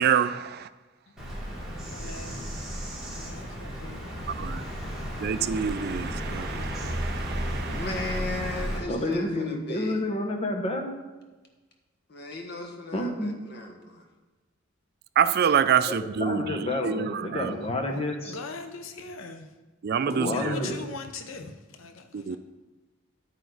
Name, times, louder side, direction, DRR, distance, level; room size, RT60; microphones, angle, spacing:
voice 1, 0.0-0.7 4.3-4.6 5.2-7.9 15.2-17.5 19.8-20.7 22.1-22.4, right 7 dB, 55° right, 0.4 m, -27 dB
Bird vocalization bird call bird song, 1.2-8.8, equal, ahead, 2.6 m, -33 dB
voice 2, 1.9-2.6 3.0-4.2 6.6-6.9 17.7-18.0 18.2-19.5 20.2-22.4, left 4 dB, 80° left, 0.7 m, -41 dB
voice 3, 7.6-10.0 12.1-14.1, left 2 dB, 55° left, 1.6 m, -36 dB
voice 4, 8.9-11.0 12.9-13.3 16.2-18.4 20.0-20.8, left 1 dB, 30° left, 1.2 m, -29 dB
9.1 x 9.1 x 4.0 m
head